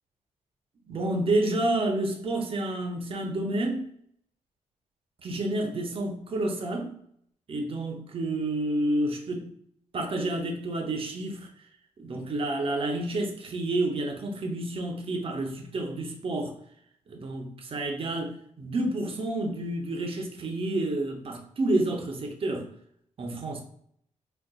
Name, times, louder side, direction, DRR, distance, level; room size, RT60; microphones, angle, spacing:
voice 1, 0.9-3.8 5.2-6.9 7.5-9.5 9.9-11.5 12.0-16.5 17.1-22.7 23.2-23.6, right 2 dB, 45° right, 0.6 m, -29 dB
3.8 x 2.3 x 2.2 m
cardioid pair, 110°, 13 cm